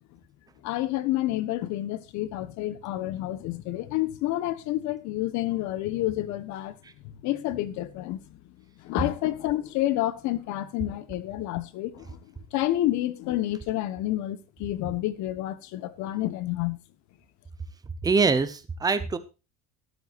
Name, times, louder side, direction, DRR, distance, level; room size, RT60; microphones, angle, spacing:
voice 1, 0.6-6.8 7.2-8.2 8.8-12.2 12.5-16.8, left 15 dB, 55° left, 1.3 m, -29 dB
voice 2, 18.0-19.2, right 4 dB, 10° right, 0.9 m, -24 dB
13.0 x 12.5 x 2.6 m
cardioid pair, 180°, 34 cm